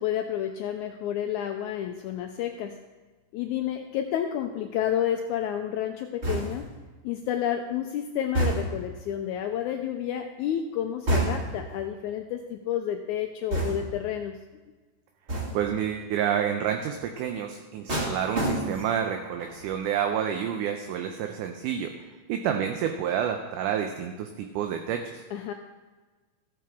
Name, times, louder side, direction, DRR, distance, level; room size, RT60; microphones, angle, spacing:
voice 1, 0.0-2.8 3.3-6.7 7.0-14.4 25.3-25.5, left 10 dB, 90° left, 5 dB, 1.7 m, -30 dB
sound 1, 6.2-6.8 8.3-8.9 11.1-11.7 13.5-14.1 15.3-15.7 17.9-19.0 19.4-19.8, right 1 dB, 30° right, 1.2 m, -28 dB
voice 2, 15.5-22.0 22.3-25.2, right 9 dB, 75° right, 5 dB, 2.1 m, -29 dB
14.5 x 8.8 x 3.6 m, 1.3 s
omnidirectional pair, 4.0 m